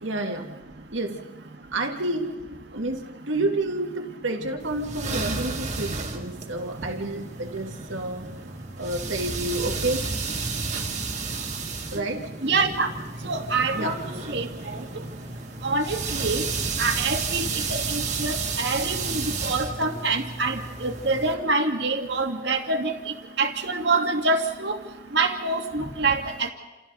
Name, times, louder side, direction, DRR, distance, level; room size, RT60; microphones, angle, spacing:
voice 1, 0.0-0.5 0.9-1.2 1.7-8.4 8.8-10.1 11.9-12.3 13.7-14.0, right 2 dB, 85° right, 3 dB, 2.4 m, -29 dB
sound 1, 4.6-21.3, right 4 dB, 40° right, 2.2 m, -32 dB
voice 2, 12.4-12.9 13.2-13.9 14.3-14.5 15.6-16.4 16.8-17.4 17.7-23.0 23.4-24.8 25.1-26.5, right 3 dB, 65° right, 4 dB, 2.2 m, -25 dB
28.5 x 28.0 x 4.1 m, 1.2 s
head